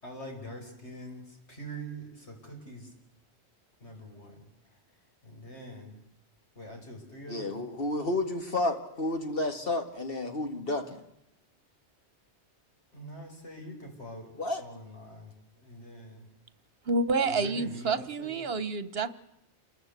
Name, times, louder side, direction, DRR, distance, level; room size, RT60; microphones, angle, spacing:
voice 1, 0.0-2.9 3.8-4.4 5.2-6.0 6.6-7.6 12.9-14.3 14.6-15.3 15.6-16.3 17.2-18.4, right 1 dB, 80° left, 2 dB, 5.4 m, -44 dB
voice 2, 7.3-11.0 14.4-14.6, left 2 dB, 55° left, 5 dB, 2.0 m, -31 dB
voice 3, 16.9-19.1, right 3 dB, 60° right, 13 dB, 1.3 m, -28 dB
28.0 x 20.0 x 8.2 m, 0.84 s
omnidirectional pair, 1.1 m